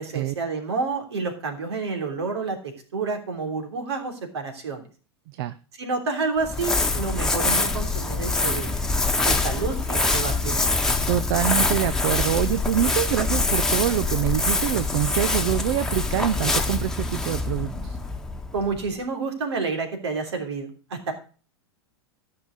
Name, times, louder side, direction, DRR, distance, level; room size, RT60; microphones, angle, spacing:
voice 1, 0.0-2.6 2.9-4.9 5.8-8.7 9.2-10.8 18.5-21.1, right 4 dB, 75° right, 5 dB, 3.2 m, -29 dB
Crumpling crinkling, 6.4-18.9, left 3 dB, 5° left, 1.5 m, -24 dB
voice 2, 11.1-18.0, right 12 dB, 60° right, 14 dB, 0.7 m, -25 dB
14.0 x 5.8 x 6.4 m, 0.39 s
hypercardioid pair, 95°, 14 cm